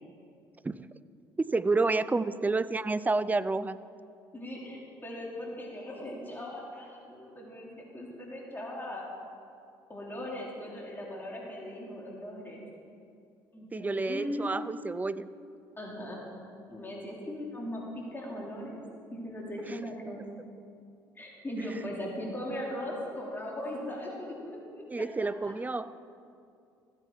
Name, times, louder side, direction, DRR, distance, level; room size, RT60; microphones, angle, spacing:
voice 1, 1.4-3.8 13.7-15.3 24.9-25.9, right 3 dB, 15° right, 15 dB, 0.5 m, -29 dB
voice 2, 4.3-9.1 9.9-12.7 13.5-14.5 15.8-16.2 16.7-18.8 19.1-20.2 21.1-24.9 25.2-25.5, left 1 dB, 20° left, -3 dB, 3.2 m, -39 dB
15.0 x 9.1 x 4.7 m, 2.5 s
hypercardioid pair, 60°, 10 cm